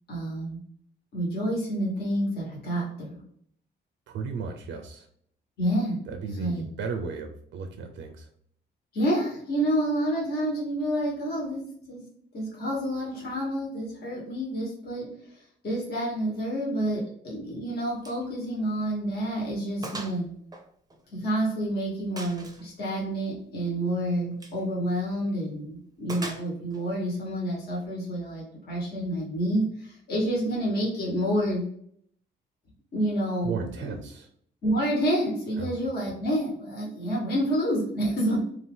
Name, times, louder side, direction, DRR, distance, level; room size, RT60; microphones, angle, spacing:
voice 1, 0.1-0.6 1.1-3.2 5.6-6.0 6.4-6.7 8.9-12.0 12.3-15.1 15.6-20.3 21.1-31.6 32.9-33.9 34.6-38.4, right 1 dB, 55° left, -3 dB, 1.2 m, -28 dB
voice 2, 4.1-5.1 6.1-8.3 33.4-34.3 35.6-35.8, right 5 dB, 70° right, 5 dB, 0.5 m, -35 dB
Gunshot gunfire, 18.0-18.2 18.6-18.7 19.2-19.3 19.8-20.2 20.5-21.5 22.2-22.7 24.3-24.6 26.1-26.8, right 2 dB, 20° right, 0.5 m, -40 dB
2.7 x 2.4 x 3.5 m, 0.65 s
cardioid pair, 90°, 20 cm